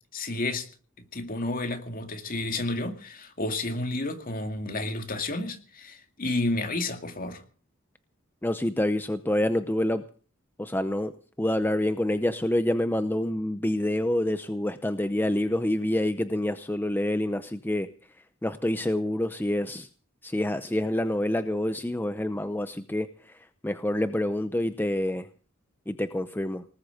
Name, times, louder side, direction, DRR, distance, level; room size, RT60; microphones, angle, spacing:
voice 1, 0.1-0.7 1.1-7.4, left 2 dB, 45° left, 2.3 m, -31 dB
voice 2, 8.4-10.0 10.6-11.1 11.4-17.9 18.4-19.9 20.2-25.3 25.9-26.7, left 1 dB, 10° left, 0.7 m, -27 dB
19.5 x 8.7 x 7.9 m
head